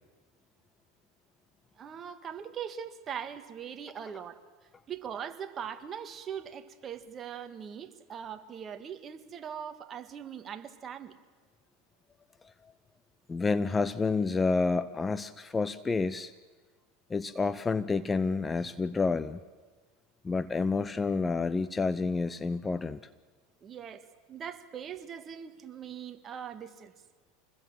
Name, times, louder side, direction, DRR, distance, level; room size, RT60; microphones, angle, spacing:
voice 1, 1.8-4.4 4.9-11.1 23.6-24.0 24.3-26.9, right 8 dB, 30° right, 8 dB, 1.7 m, -41 dB
voice 2, 13.3-16.3 17.1-19.4 20.2-23.0, left 4 dB, 15° left, 15 dB, 0.7 m, -29 dB
27.5 x 21.0 x 7.6 m, 1.3 s
supercardioid pair, 110°, 0 cm